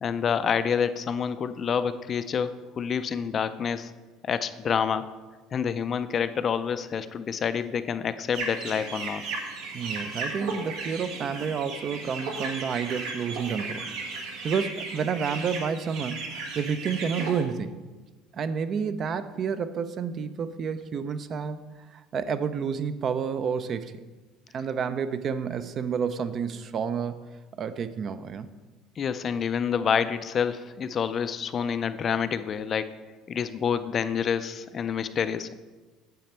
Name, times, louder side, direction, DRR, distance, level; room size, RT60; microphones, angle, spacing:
voice 1, 0.0-3.9 4.2-5.1 5.5-9.2 29.0-32.9 33.3-35.6, left 7 dB, 35° left, 12 dB, 0.3 m, -28 dB
sound 1, 8.3-17.4, right 3 dB, 75° right, 1.5 m, -35 dB
voice 2, 9.7-13.9 14.4-16.2 16.6-17.8 18.3-21.6 21.9-23.9 24.5-27.3 27.6-28.5, right 6 dB, 35° right, 13 dB, 0.4 m, -30 dB
9.1 x 6.7 x 4.3 m, 1.3 s
cardioid pair, 140°, 0 cm